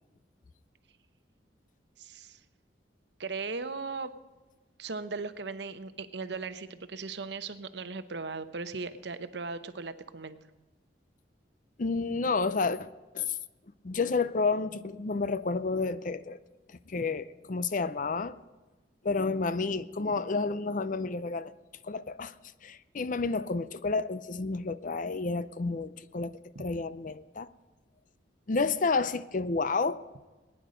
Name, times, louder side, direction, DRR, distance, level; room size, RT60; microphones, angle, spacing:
voice 1, 2.0-2.4 3.2-4.1 4.8-10.4 26.5-26.7, right 4 dB, 65° right, 0.9 m, -38 dB
voice 2, 11.8-12.9 13.1-13.4 13.8-16.4 16.9-18.4 19.0-21.5 21.8-22.3 22.6-27.5 28.5-30.0, left 4 dB, 45° left, 0.6 m, -30 dB
20.0 x 10.0 x 5.1 m
head